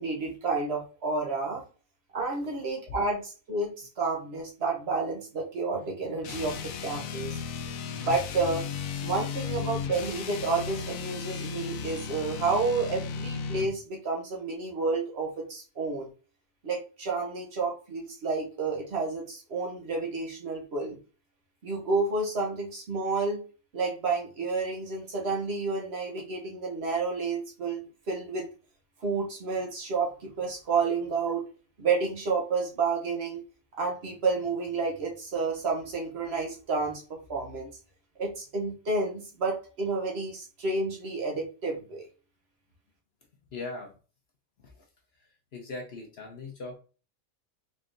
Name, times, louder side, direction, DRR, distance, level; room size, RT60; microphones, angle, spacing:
voice 1, 0.0-1.6 2.1-7.4 8.0-8.7 9.0-16.1 16.6-21.0 21.6-23.4 23.7-28.5 29.0-31.4 31.8-33.4 33.7-37.7 38.2-42.1, right 4 dB, 50° right, 1 dB, 1.1 m, -30 dB
sound 1, 6.2-13.8, left 6 dB, 80° left, 1.0 m, -35 dB
voice 2, 43.5-43.9 44.6-44.8 45.5-46.8, left 3 dB, 55° left, 1 dB, 0.8 m, -39 dB
3.9 x 3.3 x 2.5 m, 0.36 s
omnidirectional pair, 1.5 m